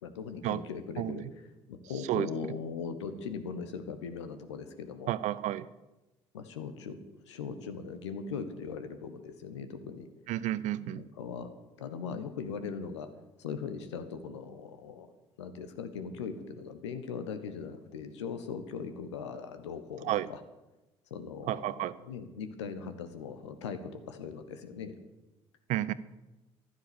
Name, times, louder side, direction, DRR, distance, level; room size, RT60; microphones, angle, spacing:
voice 1, 0.0-5.2 6.3-7.0 7.3-10.1 10.8-11.5 11.8-13.1 13.4-15.1 15.4-20.4 21.1-24.9, left 6 dB, 75° left, 9 dB, 1.3 m, -40 dB
voice 2, 5.1-5.6 10.3-11.0 20.0-20.3 21.5-21.9 25.7-25.9, right 14 dB, 55° right, 17 dB, 0.7 m, -31 dB
15.0 x 12.0 x 7.1 m, 1.0 s
figure-of-eight pair, 50°, 15 cm